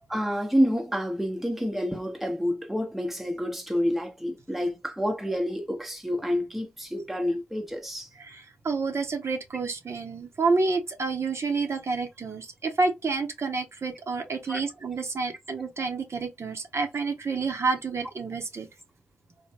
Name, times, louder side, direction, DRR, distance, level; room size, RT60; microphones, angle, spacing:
voice 1, 0.1-8.1 14.4-14.6, equal, 5° right, 0.8 m, -28 dB
voice 2, 8.2-18.7, right 4 dB, 55° right, 0.8 m, -29 dB
3.1 x 2.2 x 2.8 m
supercardioid pair, 45°, 6 cm